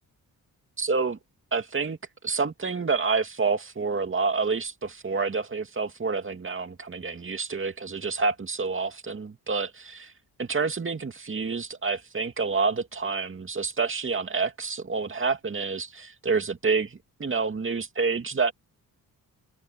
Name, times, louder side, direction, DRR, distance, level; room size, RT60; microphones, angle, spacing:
voice 1, 0.8-1.2 1.5-2.0 2.2-10.1 10.4-18.5, right 4 dB, 35° right, 2.5 m, -28 dB
cardioid pair, 85°, 37 cm